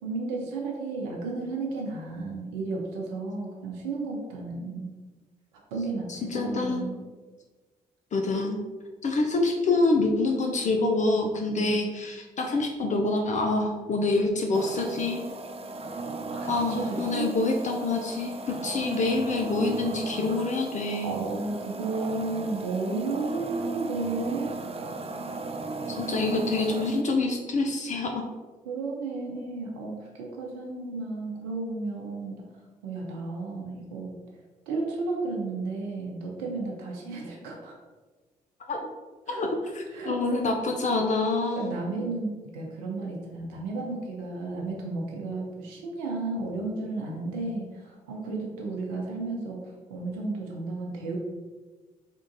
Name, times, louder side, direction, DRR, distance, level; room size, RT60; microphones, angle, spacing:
voice 1, 0.0-4.9 5.7-7.0 11.6-11.9 16.3-17.3 21.0-24.6 28.7-32.4 32.8-34.2 34.7-37.8 39.3-39.4 39.9-40.4 41.6-49.6 49.9-51.2, right 3 dB, 85° right, -1 dB, 0.6 m, -33 dB
voice 2, 6.1-6.9 8.1-8.6 9.0-15.2 16.5-18.3 18.6-21.2 26.0-28.2 38.7-38.9 39.3-41.7, left 2 dB, 45° left, 2 dB, 0.5 m, -26 dB
sound 1, 14.5-27.0, right 3 dB, 35° right, 0.5 m, -36 dB
3.6 x 2.5 x 3.8 m, 1.3 s
hypercardioid pair, 50°, 18 cm